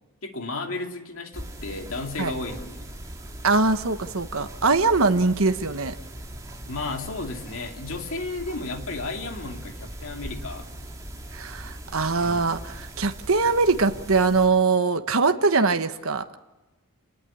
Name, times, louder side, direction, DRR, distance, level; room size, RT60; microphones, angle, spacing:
voice 1, 0.2-2.9 4.7-4.8 6.7-10.7 12.2-12.4, left 3 dB, 65° left, 4 dB, 2.5 m, -33 dB
sound 1, 1.3-14.5, right 1 dB, 15° right, 2.9 m, -40 dB
voice 2, 3.4-5.9 11.3-16.4, right 4 dB, 70° right, 8 dB, 1.3 m, -22 dB
28.5 x 19.5 x 8.6 m, 1.1 s
head